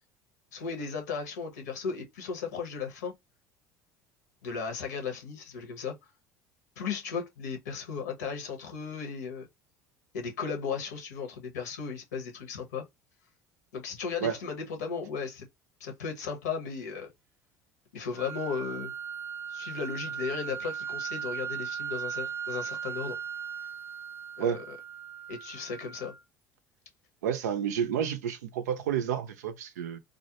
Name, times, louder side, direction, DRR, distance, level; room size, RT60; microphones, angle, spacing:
voice 1, 0.5-3.1 4.4-5.9 6.8-9.5 10.1-12.9 13.7-15.5 15.8-17.1 17.9-18.9 19.5-23.2 24.4-24.8 25.3-26.1, left 5 dB, 85° left, 0.9 m, -35 dB
sound 1, 18.2-26.2, right 7 dB, 20° right, 0.6 m, -38 dB
voice 2, 27.2-30.0, right 8 dB, 80° right, 0.4 m, -30 dB
2.4 x 2.1 x 2.8 m
hypercardioid pair, 75°, 9 cm